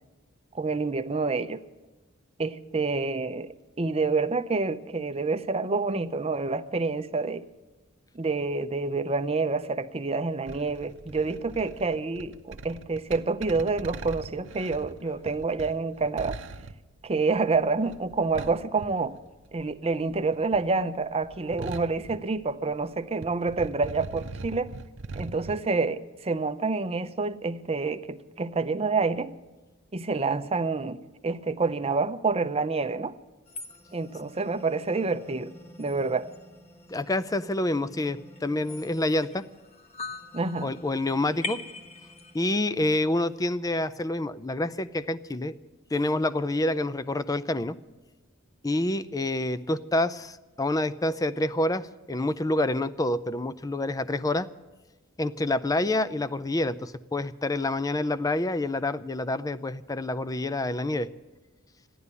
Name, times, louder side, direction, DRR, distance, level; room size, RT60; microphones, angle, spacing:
voice 1, 0.5-1.6 2.4-7.4 8.1-16.4 17.0-19.2 19.5-24.7 25.2-29.3 29.9-33.1 33.9-35.5 35.8-36.3 40.3-40.7, right 3 dB, 30° right, 0.6 m, -28 dB
sound 1, 10.5-19.7 20.0-22.9 23.1-25.6, right 3 dB, 60° right, 0.7 m, -41 dB
sound 2, 33.5-42.6, left 3 dB, 30° left, 1.2 m, -43 dB
voice 2, 36.9-39.4 40.6-41.6 42.3-45.5 45.9-47.8 48.6-54.5 55.2-61.1, left 1 dB, 15° left, 0.5 m, -27 dB
14.5 x 11.0 x 8.2 m
head